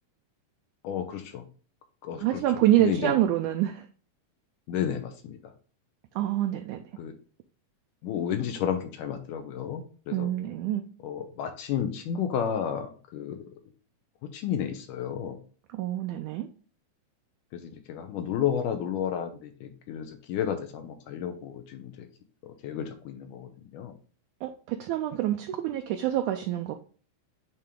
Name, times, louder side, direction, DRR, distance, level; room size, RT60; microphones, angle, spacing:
voice 1, 0.8-1.5 2.0-2.4 2.8-3.1 4.7-5.5 7.0-7.2 8.0-10.3 11.0-13.4 14.2-15.4 17.5-22.1 22.4-24.0, left 8 dB, 75° left, 6 dB, 2.3 m, -32 dB
voice 2, 2.2-3.9 6.2-6.8 10.1-10.9 15.7-16.5 24.4-26.7, right 12 dB, 80° right, 5 dB, 1.9 m, -26 dB
8.4 x 3.4 x 3.6 m, 0.39 s
omnidirectional pair, 4.0 m